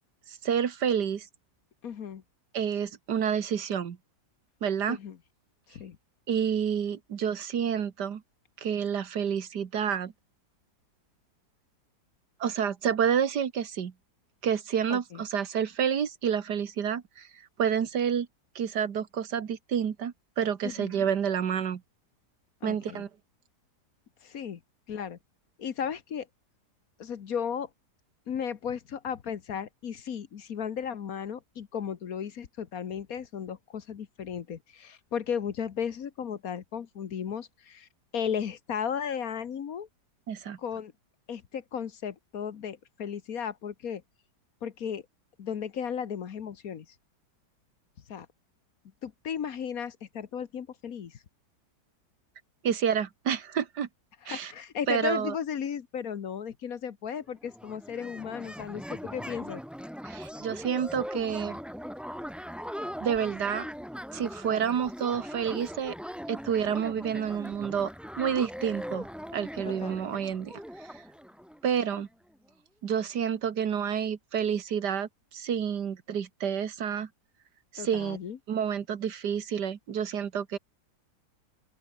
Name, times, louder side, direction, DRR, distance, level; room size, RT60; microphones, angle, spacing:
voice 1, 0.3-1.3 2.5-4.0 4.6-5.0 6.3-8.2 8.6-10.1 12.4-13.9 14.4-18.3 18.6-21.8 22.6-23.1 40.3-40.6 52.6-53.9 54.3-54.5 54.9-55.4 60.0-61.6 63.0-63.7 64.1-66.0 66.3-67.9 68.2-69.1 69.3-71.0 71.6-72.1 72.8-77.1 77.7-78.2 78.5-80.6, right 8 dB, 80° right, 2.0 m, -29 dB
voice 2, 1.8-2.2 4.9-5.2 5.7-6.0 14.9-15.2 20.6-21.0 22.6-23.0 24.2-24.6 24.9-25.2 25.6-26.3 27.0-27.7 28.3-37.9 38.1-39.9 40.6-40.9 41.3-44.0 44.6-45.0 45.4-46.9 48.1-48.3 49.0-51.2 54.2-59.6 69.8-70.0 77.8-78.4, left 7 dB, 60° left, 1.5 m, -35 dB
sound 1, 57.1-57.2 57.4-72.0, equal, ahead, 4.4 m, -40 dB
open air
omnidirectional pair, 1.8 m